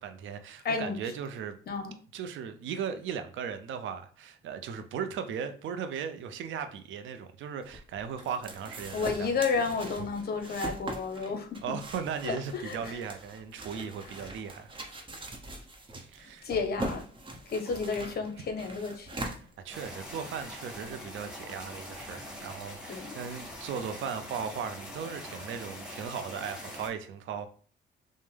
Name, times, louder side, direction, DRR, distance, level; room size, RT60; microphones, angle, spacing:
voice 1, 0.0-1.6 2.1-9.3 11.6-14.7 16.0-16.5 19.6-27.5, right 7 dB, 75° right, 0.6 m, -37 dB
voice 2, 0.6-1.0 1.7-1.9 8.9-11.6 12.2-13.0 13.7-13.8 16.4-17.0 17.5-19.1 22.9-23.2, left 4 dB, 50° left, 0.9 m, -31 dB
sound 1, 7.6-20.1, right 1 dB, 25° right, 0.9 m, -42 dB
sound 2, 19.7-26.9, left 1 dB, 5° right, 1.6 m, -43 dB
5.3 x 2.2 x 3.3 m
cardioid pair, 90°, 20 cm